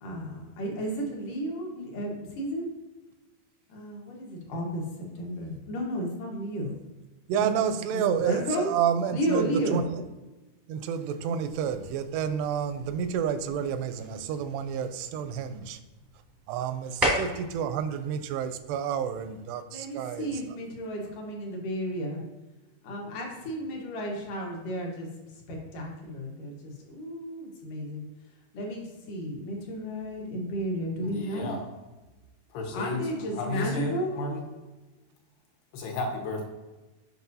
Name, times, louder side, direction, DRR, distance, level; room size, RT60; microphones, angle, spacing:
voice 1, 0.0-2.7 3.7-4.8 5.2-6.7 7.4-7.5 7.9-8.7 9.1-9.8 11.3-11.4 19.7-22.2 22.8-25.1 25.5-28.0 28.5-31.5 32.7-34.2, equal, 65° left, 2.5 m, -33 dB
voice 2, 7.3-10.1 10.7-15.8 16.5-20.4, right 8 dB, 90° right, 2.7 m, -30 dB
sound 1, 11.4-19.4, right 1 dB, 35° right, 0.3 m, -37 dB
voice 3, 31.0-31.6 32.5-34.5 35.7-36.5, left 2 dB, 80° left, 3.3 m, -33 dB
8.3 x 6.0 x 2.7 m
omnidirectional pair, 4.6 m